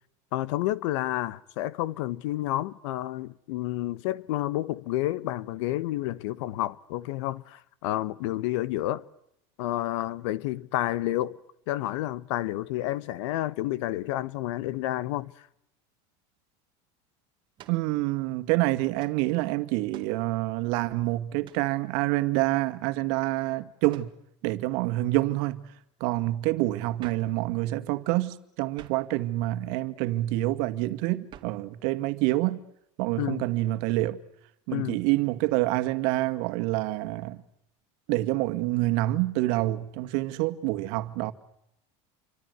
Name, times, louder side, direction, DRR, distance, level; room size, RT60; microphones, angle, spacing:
voice 1, 0.3-9.0 9.6-11.4 11.7-15.3 33.2-33.5 34.7-35.0, left 15 dB, 75° left, 1.2 m, -30 dB
sound 1, 17.6-17.9 19.0-19.2 19.9-20.2 21.4-21.7 23.9-24.2 27.0-27.4 28.7-29.1 31.3-31.7, right 11 dB, 30° right, 2.0 m, -49 dB
voice 2, 17.7-24.1 24.4-25.7 26.0-32.6 33.0-34.2 34.7-37.4 38.1-41.3, right 18 dB, 60° right, 2.1 m, -27 dB
28.5 x 25.5 x 8.1 m
cardioid pair, 165°, 16 cm